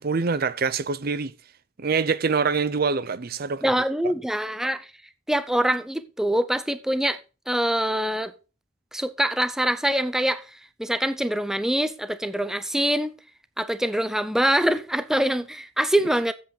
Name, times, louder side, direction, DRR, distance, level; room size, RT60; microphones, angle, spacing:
voice 1, 0.0-1.3 1.8-3.6, right 5 dB, 55° right, 0.6 m, -25 dB
voice 2, 3.6-4.9 5.3-7.2 7.5-8.3 8.9-13.1 13.6-16.3, right 1 dB, 5° right, 0.5 m, -24 dB
8.6 x 7.7 x 5.5 m
head